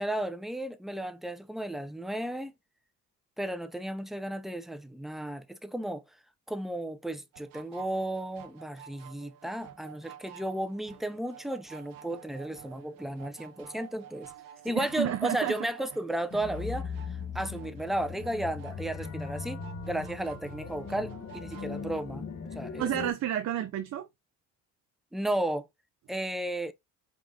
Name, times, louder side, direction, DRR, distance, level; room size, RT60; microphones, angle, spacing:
voice 1, 0.0-2.5 3.4-6.0 6.5-14.3 14.6-16.9 17.3-22.3 22.5-22.9 25.1-25.7 26.1-26.7, right 1 dB, ahead, 0.5 m, -34 dB
sound 1, 7.3-22.0, right 9 dB, 70° right, 0.9 m, -51 dB
voice 2, 14.6-15.6 22.8-24.1, right 11 dB, 50° right, 0.6 m, -31 dB
sound 2, 16.3-23.1, left 5 dB, 50° left, 1.5 m, -39 dB
5.2 x 2.5 x 3.6 m
cardioid pair, 95°, 35 cm